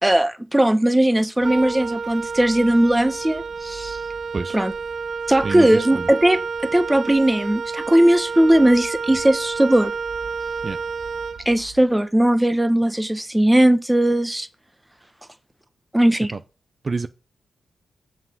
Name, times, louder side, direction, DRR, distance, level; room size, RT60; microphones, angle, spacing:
voice 1, 0.0-4.0 4.5-4.7 5.3-9.9 11.4-14.5 15.9-16.3, right 1 dB, 10° right, 0.9 m, -18 dB
Wind instrument woodwind instrument, 1.4-11.8, right 5 dB, 55° right, 0.9 m, -30 dB
voice 2, 5.4-6.1 10.6-10.8 16.8-17.1, right 4 dB, 35° right, 0.6 m, -27 dB
7.4 x 5.7 x 7.1 m
cardioid pair, 80°, 0 cm